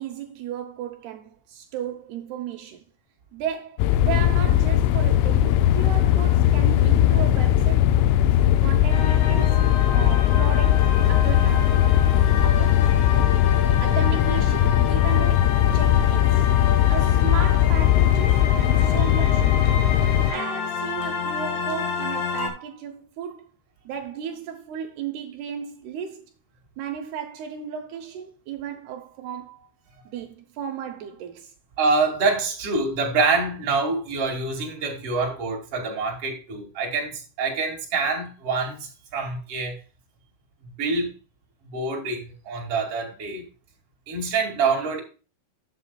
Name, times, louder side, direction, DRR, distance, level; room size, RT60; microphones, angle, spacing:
voice 1, 0.0-2.8 3.3-7.9 8.6-9.6 9.9-11.9 12.4-12.9 13.8-16.5 16.9-19.8 20.3-23.5 23.9-26.2 26.8-29.7 30.1-31.5, right 8 dB, 75° right, 2.5 m, -35 dB
sound 1, 3.8-20.3, left 12 dB, 85° left, 3.0 m, -19 dB
sound 2, 8.9-22.5, left 6 dB, 65° left, 4.1 m, -30 dB
voice 2, 31.8-39.8 40.8-41.1 41.6-43.4 44.1-45.0, right 4 dB, 40° right, 2.9 m, -26 dB
12.5 x 8.0 x 2.3 m
omnidirectional pair, 5.6 m